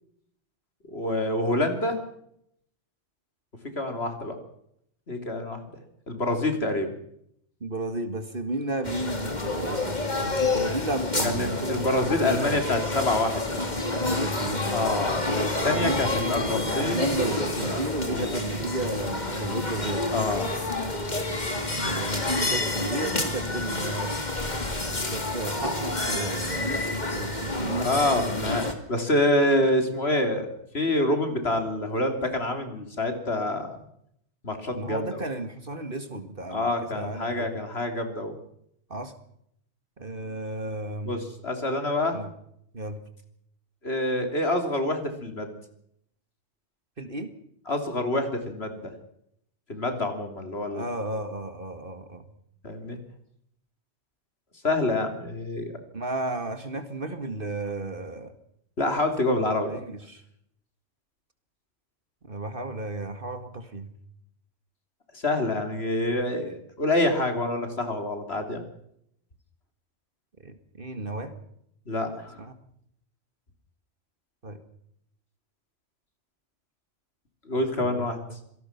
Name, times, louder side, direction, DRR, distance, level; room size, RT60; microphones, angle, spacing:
voice 1, 0.9-2.0 3.8-4.4 5.1-5.6 6.1-6.9 11.2-13.6 14.7-17.8 18.1-18.4 20.1-20.5 27.7-33.8 34.4-35.2 36.5-38.4 41.1-42.2 43.8-45.5 47.7-48.9 49.7-50.8 52.6-53.0 54.6-55.7 58.8-59.8 65.2-68.6 71.9-72.4 77.5-78.2, left 1 dB, 60° left, 5 dB, 3.6 m, -27 dB
voice 2, 7.6-12.6 13.9-14.9 15.7-20.1 21.7-24.2 25.1-27.9 34.7-37.6 38.9-39.1 40.0-41.2 42.1-42.3 42.7-43.0 47.0-47.3 50.7-52.2 55.9-58.3 59.5-60.2 62.2-63.9 70.4-71.4 72.4-72.6 74.4-74.6 77.5-78.4, right 2 dB, 50° right, 9 dB, 2.3 m, -33 dB
sound 1, 8.8-28.7, left 2 dB, 35° left, 2.7 m, -29 dB
26.0 x 18.0 x 6.0 m, 0.73 s
omnidirectional pair, 1.2 m